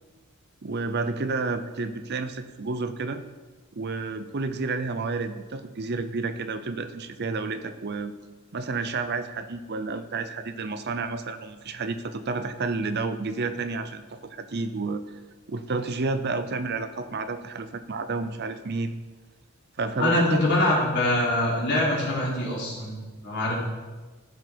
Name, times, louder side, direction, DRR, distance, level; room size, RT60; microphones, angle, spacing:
voice 1, 0.6-3.2 3.7-8.1 8.5-15.0 15.5-18.9 19.8-20.5, right 3 dB, 50° right, 10 dB, 0.6 m, -30 dB
voice 2, 20.0-23.0 23.2-23.6, left 1 dB, 50° left, -5 dB, 3.7 m, -24 dB
15.0 x 6.9 x 4.5 m, 1.3 s
head